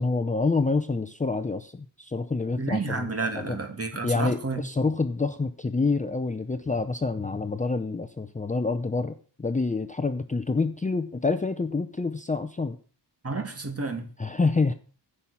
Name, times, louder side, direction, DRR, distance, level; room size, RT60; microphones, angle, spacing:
voice 1, 0.0-3.6 4.0-12.8 14.2-14.7, left 3 dB, 20° left, 9 dB, 0.6 m, -27 dB
voice 2, 2.6-4.6 13.2-14.1, right 3 dB, 35° right, 6 dB, 2.4 m, -30 dB
15.0 x 5.8 x 8.5 m, 0.40 s
wide cardioid pair, 175°, 43 cm